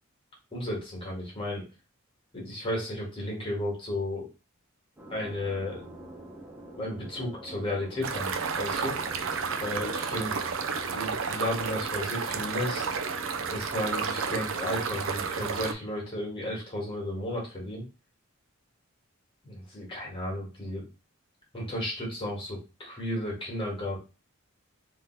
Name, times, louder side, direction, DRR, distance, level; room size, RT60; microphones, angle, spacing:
voice 1, 0.5-1.6 2.3-4.3 5.1-5.9 6.8-9.0 9.6-10.4 10.8-12.9 13.5-17.8 19.4-20.9 21.5-24.0, left 1 dB, 25° left, -4 dB, 1.9 m, -33 dB
sound 1, 5.0-15.7, right 1 dB, 10° right, 0.7 m, -46 dB
sound 2, 8.0-15.7, right 5 dB, 65° right, 0.5 m, -31 dB
3.5 x 3.1 x 4.6 m, 0.31 s
head